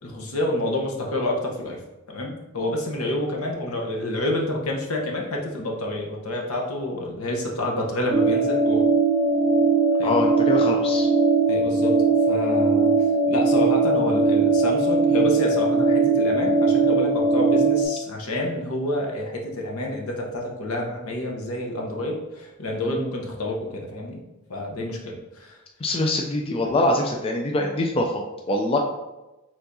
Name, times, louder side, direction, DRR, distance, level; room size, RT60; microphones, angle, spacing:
voice 1, 0.0-1.8 2.1-8.9 10.0-10.3 11.5-12.0 12.3-13.0 13.3-24.2 24.5-25.6, left 1 dB, 75° left, 0 dB, 0.9 m, -28 dB
sound 1, 8.1-17.8, right 4 dB, 30° right, 1.0 m, -20 dB
voice 2, 10.0-11.1 25.8-28.2 28.5-28.8, left 1 dB, 25° left, 1 dB, 0.3 m, -23 dB
4.5 x 3.8 x 2.6 m, 1.0 s
head